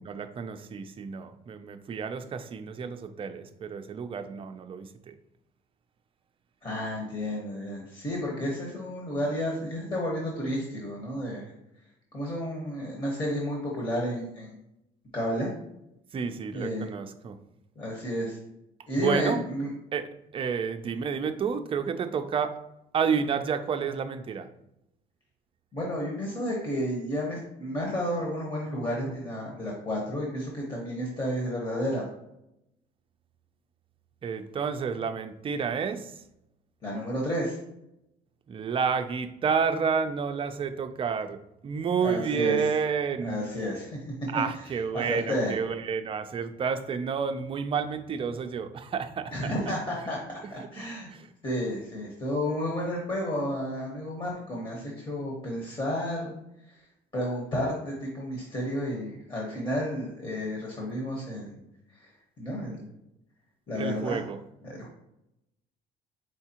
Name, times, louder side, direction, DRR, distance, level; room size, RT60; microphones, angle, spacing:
voice 1, 0.0-5.2 16.1-17.4 18.9-19.4 19.9-20.1 20.3-22.6 22.9-24.5 34.2-36.2 38.5-43.4 44.3-49.7 50.4-51.3 63.7-64.4, right 6 dB, 30° right, 8 dB, 0.4 m, -30 dB
voice 2, 6.6-11.5 12.1-14.5 15.1-15.5 16.5-16.9 17.8-18.4 18.9-19.7 25.7-32.1 36.8-37.6 42.0-42.6 43.2-44.0 44.9-45.5 49.3-51.1 51.4-56.3 57.1-61.6 62.0-62.1 62.4-62.9 63.7-64.2 64.6-64.9, equal, 30° left, -2 dB, 1.2 m, -31 dB
4.8 x 3.5 x 2.9 m, 0.86 s
cardioid pair, 110°, 17 cm